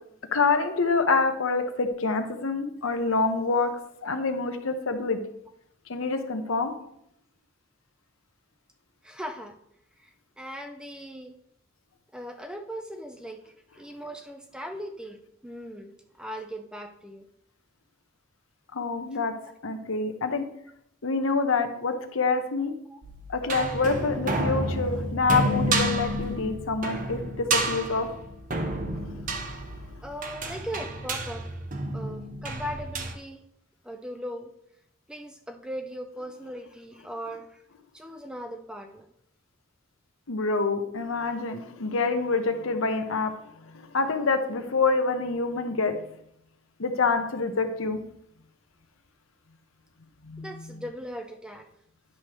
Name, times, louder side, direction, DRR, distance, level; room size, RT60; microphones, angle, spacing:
voice 1, 0.3-3.7 4.0-5.2 5.9-6.7 18.7-19.3 19.6-20.4 21.0-22.7 23.3-28.1 40.3-43.3 43.7-46.0 46.8-48.0 50.2-50.5, left 4 dB, 75° left, 7 dB, 0.9 m, -26 dB
voice 2, 9.0-9.6 10.0-11.3 12.1-15.9 16.2-17.3 20.2-20.4 22.9-23.0 30.0-31.5 31.9-33.4 33.8-34.5 35.1-37.6 37.9-39.1 50.4-51.7, equal, 5° right, 5 dB, 0.5 m, -39 dB
sound 1, 23.0-33.1, right 1 dB, 40° right, 0.7 m, -30 dB
10.0 x 6.3 x 3.0 m, 0.74 s
head